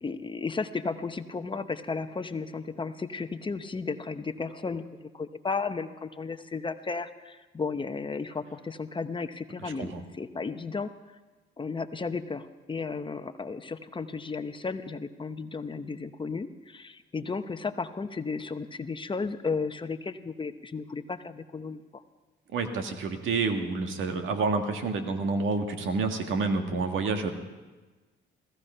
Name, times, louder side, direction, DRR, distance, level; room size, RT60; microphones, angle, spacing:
voice 1, 0.0-10.9 11.6-22.0, left 4 dB, 25° left, 9 dB, 0.8 m, -34 dB
voice 2, 9.6-10.0 22.5-27.3, right 4 dB, 80° right, 5 dB, 1.8 m, -29 dB
16.5 x 15.0 x 5.6 m, 1.3 s
cardioid pair, 90°, 20 cm